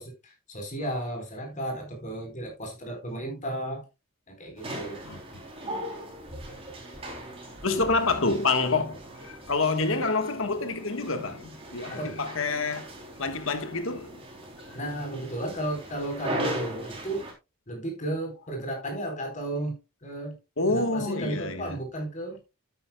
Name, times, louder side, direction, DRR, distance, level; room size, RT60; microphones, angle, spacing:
voice 1, 0.0-3.8 4.3-5.0 7.6-7.9 11.9-12.2 14.7-17.2 17.7-20.4 20.7-22.6, right 1 dB, 35° left, 4.2 m, -34 dB
sound 1, 4.6-17.3, equal, 25° right, 3.4 m, -39 dB
voice 2, 7.6-12.8 13.2-14.2 20.6-21.8, left 3 dB, 70° left, 1.4 m, -27 dB
12.0 x 9.6 x 2.3 m
head